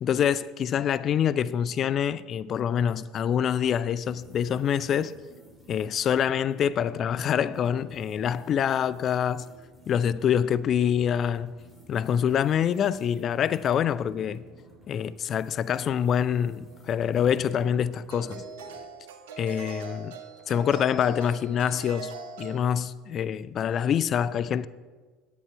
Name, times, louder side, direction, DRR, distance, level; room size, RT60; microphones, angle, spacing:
voice 1, 0.0-5.1 5.7-9.5 9.9-11.6 11.9-14.4 14.9-18.4 19.4-20.2 20.5-22.1 22.4-24.7, left 8 dB, 45° left, 0.4 m, -26 dB
sound 1, 4.1-18.9, right 1 dB, 5° right, 3.2 m, -52 dB
Jack in the box, 16.7-16.9 18.1-22.6, right 3 dB, 75° right, 0.8 m, -41 dB
10.5 x 8.5 x 4.5 m
hypercardioid pair, 70°, 0 cm